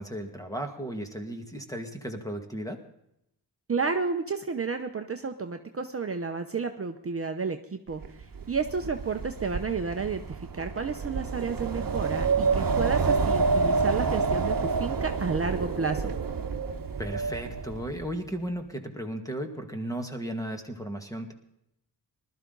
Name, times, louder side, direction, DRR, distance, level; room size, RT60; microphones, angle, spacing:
voice 1, 0.0-2.8 17.0-21.3, right 1 dB, 10° left, 4 dB, 2.0 m, -35 dB
voice 2, 3.7-16.1, right 5 dB, 35° right, 6 dB, 0.8 m, -31 dB
Wind, 8.0-18.1, right 4 dB, 50° right, 1.2 m, -28 dB
20.0 x 12.5 x 3.9 m, 0.80 s
wide cardioid pair, 110°, 42 cm